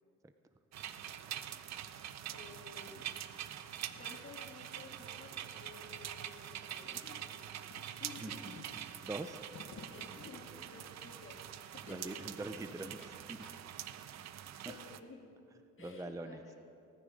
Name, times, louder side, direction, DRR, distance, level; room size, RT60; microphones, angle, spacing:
sound 1, 0.7-15.0, right 11 dB, 60° right, 0.6 m, -45 dB
sound 2, 1.0-10.7, left 5 dB, 70° left, 1.2 m, -60 dB
voice 1, 1.9-3.1 4.0-7.5 8.0-8.6 9.9-11.4 11.7-12.3 13.0-13.1 14.7-15.2 15.8-16.6, left 4 dB, 40° left, 0 dB, 2.2 m, -53 dB
voice 2, 8.2-8.6 9.0-9.4 11.8-13.0 13.3-13.4 14.6-14.8 15.8-16.4, right 2 dB, 10° right, 9 dB, 0.5 m, -43 dB
18.5 x 9.8 x 5.1 m, 2.7 s
cardioid pair, 90°, 30 cm